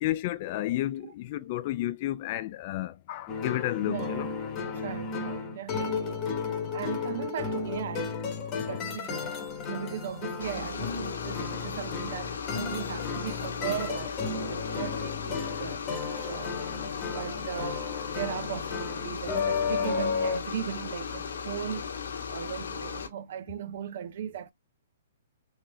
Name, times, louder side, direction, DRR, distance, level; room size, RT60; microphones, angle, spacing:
voice 1, 0.0-4.3 8.6-8.8, left 15 dB, 45° left, 0.4 m, -31 dB
sound 1, 3.3-20.4, left 5 dB, 30° left, 1.0 m, -33 dB
voice 2, 3.9-4.2 4.7-6.2 6.7-8.2 8.7-9.3 9.6-16.6 17.1-21.9 22.3-24.5, right 9 dB, 60° right, 0.6 m, -38 dB
sound 2, 10.4-23.1, left 6 dB, 80° left, 1.1 m, -37 dB
3.7 x 2.7 x 3.1 m
hypercardioid pair, 135°, 0 cm